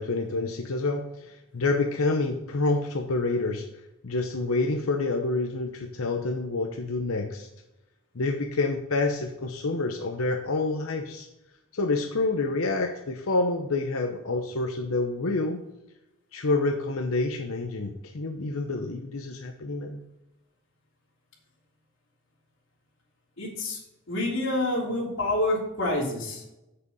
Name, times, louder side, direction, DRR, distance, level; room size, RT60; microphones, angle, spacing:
voice 1, 0.0-3.6 4.0-7.5 8.1-11.3 11.7-15.6 16.3-20.0, left 3 dB, 80° left, 4 dB, 0.8 m, -28 dB
voice 2, 23.4-23.8 24.1-26.5, left 1 dB, 60° left, -3 dB, 3.4 m, -27 dB
7.9 x 6.7 x 5.4 m, 0.90 s
head